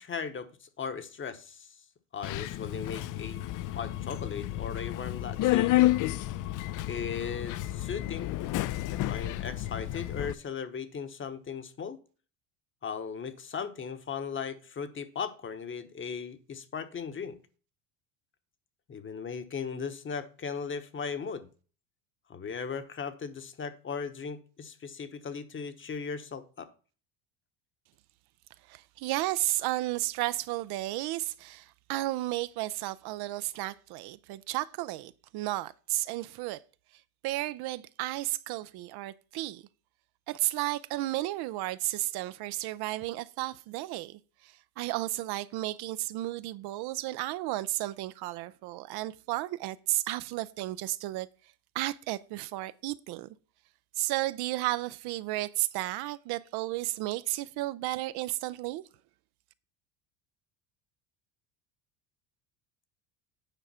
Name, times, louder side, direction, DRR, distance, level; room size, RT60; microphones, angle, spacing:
voice 1, 0.0-1.8 2.1-3.4 3.8-5.7 6.9-8.4 8.9-12.0 12.8-17.4 18.9-21.5 22.3-26.7, left 6 dB, 25° left, 1.0 m, -37 dB
Subway metro underground, 2.2-10.3, left 15 dB, 45° left, 0.5 m, -30 dB
voice 2, 28.7-36.6 37.2-39.6 40.3-51.3 51.7-53.3 54.0-58.8, right 17 dB, 55° right, 0.6 m, -33 dB
9.1 x 4.8 x 5.6 m
supercardioid pair, 105°, 45 cm